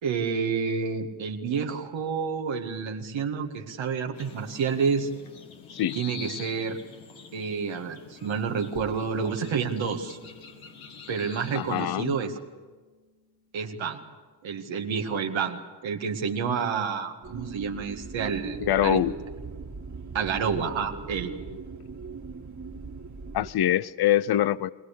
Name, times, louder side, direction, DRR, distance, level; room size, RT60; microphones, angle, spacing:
voice 1, 0.0-5.1 6.0-6.8 7.3-10.2 11.1-12.4 13.5-14.0 14.4-19.0 20.1-21.3, right 6 dB, 75° right, 2.0 m, -29 dB
sound 1, 4.1-11.8, left 6 dB, 85° left, 2.1 m, -46 dB
sound 2, 8.7-14.1, left 1 dB, 15° right, 2.0 m, -52 dB
voice 2, 11.5-12.1 18.7-19.1 23.3-24.7, left 12 dB, 55° left, 0.7 m, -24 dB
sound 3, 17.2-23.5, right 4 dB, 40° right, 2.1 m, -39 dB
21.0 x 20.5 x 8.4 m
supercardioid pair, 45°, 46 cm